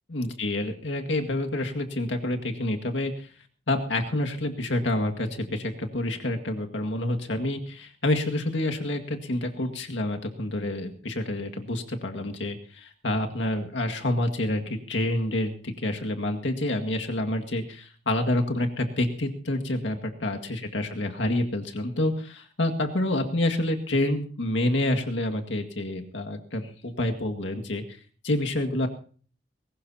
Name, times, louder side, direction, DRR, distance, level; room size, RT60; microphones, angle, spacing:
voice 1, 0.1-3.3 3.7-27.8 28.2-28.9, left 1 dB, 85° left, 4 dB, 2.0 m, -28 dB
20.5 x 18.0 x 2.8 m, 0.42 s
head